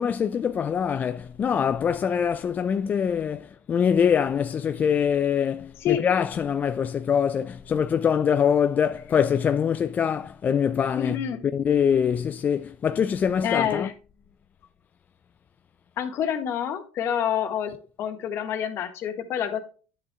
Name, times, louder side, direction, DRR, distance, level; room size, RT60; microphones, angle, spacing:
voice 1, 0.0-11.2 11.5-13.9, left 7 dB, 30° left, 0.3 m, -24 dB
voice 2, 10.9-11.4 13.4-13.9 16.0-19.6, left 9 dB, 50° left, 1.5 m, -27 dB
10.5 x 7.2 x 2.3 m
hypercardioid pair, 85°, 6 cm